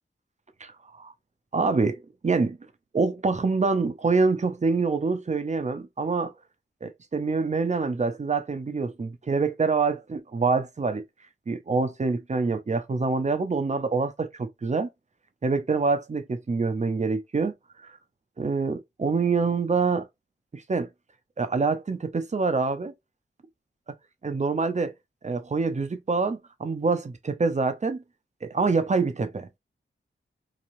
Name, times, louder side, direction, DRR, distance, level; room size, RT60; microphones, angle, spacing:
voice 1, 0.6-1.1 1.5-2.6 2.9-6.3 6.8-11.0 11.5-14.9 15.4-17.5 17.8-17.9 18.4-20.1 20.5-20.9 21.4-22.9 24.2-24.9 25.2-28.0 28.4-29.6, right 4 dB, 35° right, 0.6 m, -26 dB
3.1 x 2.3 x 2.6 m
cardioid pair, 55°, 21 cm